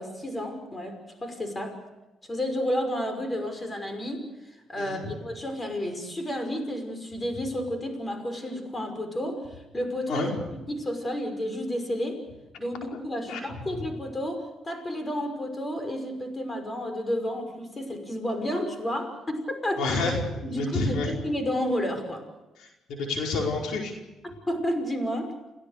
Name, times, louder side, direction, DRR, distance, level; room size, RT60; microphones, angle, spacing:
voice 1, 0.0-1.8 2.3-4.3 4.7-9.5 9.7-10.3 10.7-12.2 12.6-20.0 20.4-22.2 24.5-25.3, equal, 20° left, 6 dB, 5.8 m, -31 dB
voice 2, 4.8-5.1 10.1-10.3 12.9-13.0 13.3-13.4 19.8-20.2 20.5-21.1 22.9-23.9, left 3 dB, 80° left, 1 dB, 5.0 m, -28 dB
29.5 x 17.0 x 6.7 m, 1.0 s
cardioid pair, 90°, 0 cm